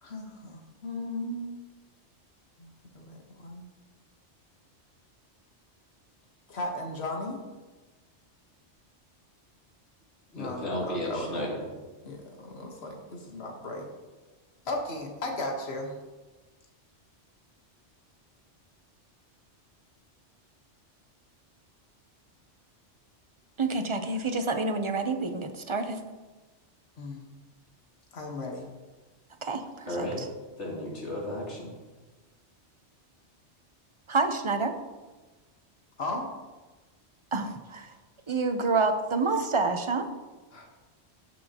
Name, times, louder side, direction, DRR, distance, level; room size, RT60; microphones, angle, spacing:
voice 1, 0.0-1.5 2.6-3.6 6.5-7.4 10.3-11.3 12.0-13.9 14.6-15.9 27.0-27.2 28.1-28.7 36.0-36.3 40.5-40.7, left 2 dB, 65° left, 1 dB, 1.6 m, -36 dB
voice 2, 10.3-11.6 29.9-30.2 30.6-31.7, left 1 dB, 85° left, -5 dB, 3.1 m, -33 dB
voice 3, 23.6-26.0 29.4-30.3 34.1-34.7 37.3-37.9 38.3-40.1, right 3 dB, 30° right, 6 dB, 0.7 m, -28 dB
16.5 x 6.4 x 2.9 m, 1.2 s
omnidirectional pair, 1.2 m